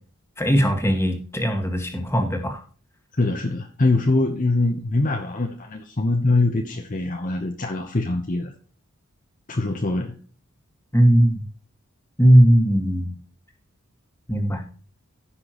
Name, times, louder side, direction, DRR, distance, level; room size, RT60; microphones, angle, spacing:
voice 1, 0.4-2.6 10.9-11.4 12.2-13.1 14.3-14.6, equal, 10° left, 4 dB, 1.7 m, -18 dB
voice 2, 3.1-8.5 9.5-10.1, left 2 dB, 35° left, 4 dB, 0.9 m, -23 dB
15.5 x 6.1 x 3.0 m, 0.40 s
head